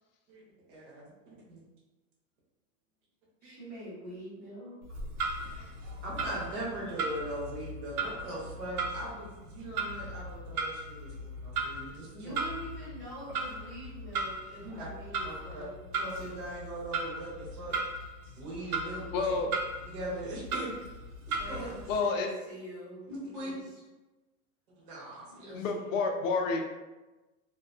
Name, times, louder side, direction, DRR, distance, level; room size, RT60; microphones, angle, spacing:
voice 1, 0.7-1.6 3.4-3.6 5.5-11.1 11.4-12.3 14.6-14.9 15.2-15.6 16.0-17.8 18.2-19.4 19.9-20.7 21.3-21.7 23.1-23.6 24.8-25.5, right 1 dB, 35° right, -6 dB, 0.7 m, -40 dB
voice 2, 3.4-4.7 12.1-15.9 21.3-23.7 25.3-25.9, equal, 5° left, -15 dB, 0.5 m, -45 dB
Clock, 4.8-22.0, right 3 dB, 85° right, 0.6 m, -37 dB
voice 3, 19.1-19.5 21.9-22.3 25.5-26.7, left 4 dB, 65° left, 4 dB, 0.5 m, -29 dB
2.3 x 2.2 x 2.4 m, 1.1 s
supercardioid pair, 175°, 43 cm